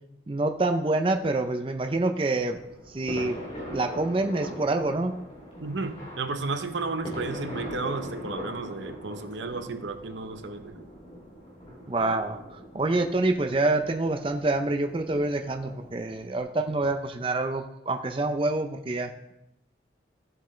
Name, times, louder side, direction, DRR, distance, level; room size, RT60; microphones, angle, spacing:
voice 1, 0.3-2.6 2.9-3.4 3.7-5.2 11.9-19.3, right 2 dB, 30° right, 0.5 m, -27 dB
sound 1, 2.3-16.4, equal, 30° left, 2.9 m, -42 dB
voice 2, 5.6-10.7, right 3 dB, 80° right, 0.8 m, -33 dB
15.0 x 7.6 x 3.2 m
head